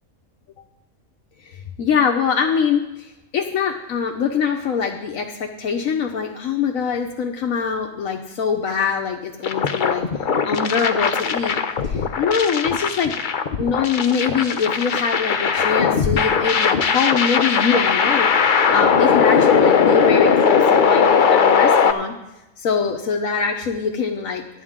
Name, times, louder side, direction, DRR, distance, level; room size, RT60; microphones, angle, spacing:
voice 1, 1.4-10.0 10.4-11.6 11.8-13.1 13.6-22.1 22.6-24.4, left 6 dB, 80° left, 2 dB, 1.3 m, -23 dB
sound 1, 9.4-21.9, left 6 dB, 45° left, 0.8 m, -18 dB
14.5 x 11.0 x 3.7 m, 0.96 s
omnidirectional pair, 1.4 m